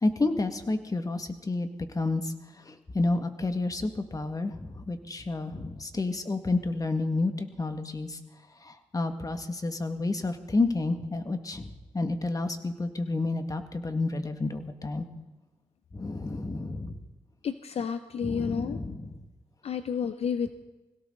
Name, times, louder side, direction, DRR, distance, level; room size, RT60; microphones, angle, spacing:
voice 1, 0.0-1.7 1.9-2.3 2.7-8.2 8.6-15.1 15.9-17.0 18.2-19.2, left 2 dB, 30° left, 7 dB, 1.9 m, -30 dB
voice 2, 17.4-18.8 19.6-20.5, left 7 dB, 65° left, 11 dB, 0.7 m, -31 dB
21.5 x 17.0 x 3.9 m, 1.2 s
cardioid pair, 55°, 11 cm